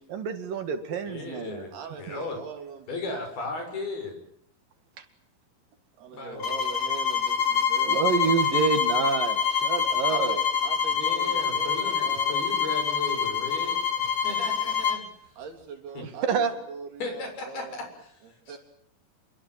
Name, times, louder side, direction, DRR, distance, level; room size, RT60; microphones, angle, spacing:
voice 1, 0.1-1.7 7.9-10.4 16.2-16.5, right 6 dB, 65° right, 9 dB, 3.7 m, -27 dB
voice 2, 1.0-1.7 2.0-2.4 2.9-4.2 6.1-6.5 9.8-10.0 10.9-15.0 16.0-16.1 17.0-17.7 18.0-18.6, left 3 dB, 75° left, 5 dB, 9.0 m, -36 dB
voice 3, 1.7-3.0 6.0-8.3 10.1-12.4 15.4-17.8 18.5-18.6, right 5 dB, 80° right, 6 dB, 5.6 m, -41 dB
sound 1, 6.4-15.0, left 7 dB, 40° left, 2.7 m, -26 dB
28.0 x 23.0 x 7.6 m, 0.72 s
omnidirectional pair, 4.5 m